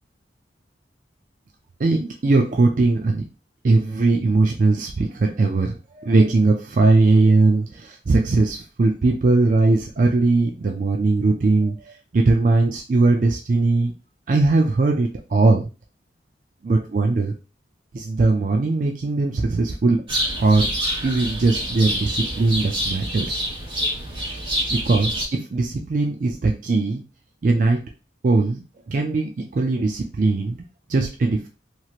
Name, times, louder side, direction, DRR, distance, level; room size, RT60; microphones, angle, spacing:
voice 1, 1.8-3.2 3.6-13.9 14.3-15.7 16.6-17.3 17.9-20.0 20.4-20.7 21.0-23.4 24.3-24.4 24.7-27.0 27.4-27.8 28.2-31.5, right 3 dB, 45° right, 3 dB, 0.4 m, -20 dB
sound 1, 20.1-25.3, equal, 30° right, 1.0 m, -27 dB
3.0 x 2.8 x 2.4 m, 0.31 s
head